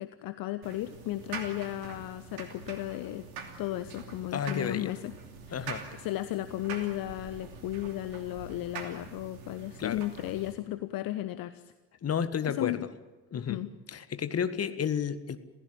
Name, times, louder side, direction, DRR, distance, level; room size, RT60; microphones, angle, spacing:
voice 1, 0.0-3.2 3.6-5.1 5.5-5.7 6.0-11.7 12.4-12.8 13.3-13.7, left 15 dB, 50° left, 12 dB, 1.1 m, -35 dB
sound 1, 0.6-10.5, right 5 dB, 70° right, 2.9 m, -44 dB
voice 2, 4.3-4.9 5.5-5.8 9.8-10.0 12.0-12.8 13.3-13.6 13.9-15.4, left 7 dB, 35° left, 11 dB, 1.7 m, -31 dB
27.5 x 15.5 x 8.9 m, 1.2 s
figure-of-eight pair, 50°, 44 cm